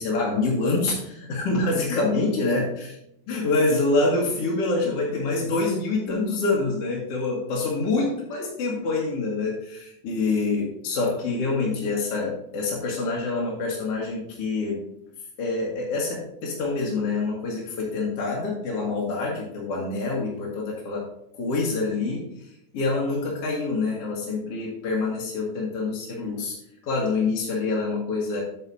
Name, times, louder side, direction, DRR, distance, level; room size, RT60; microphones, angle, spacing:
voice 1, 0.0-2.7 3.3-14.8 15.4-21.0 21.3-22.3 22.7-26.6 26.8-28.4, left 3 dB, 50° left, -4 dB, 2.3 m, -26 dB
9.8 x 9.1 x 2.7 m, 0.79 s
omnidirectional pair, 4.1 m